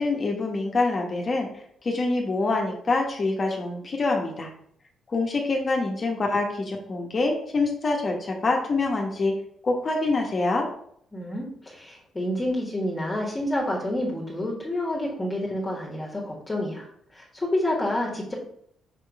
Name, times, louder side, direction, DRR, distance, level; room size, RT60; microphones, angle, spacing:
voice 1, 0.0-1.5 1.8-4.5 5.1-9.4 9.6-10.7, left 3 dB, 40° left, 1 dB, 1.2 m, -25 dB
voice 2, 11.1-16.9 17.1-18.3, left 1 dB, 20° left, -3 dB, 1.6 m, -28 dB
6.0 x 3.7 x 4.7 m, 0.66 s
cardioid pair, 90°, 0 cm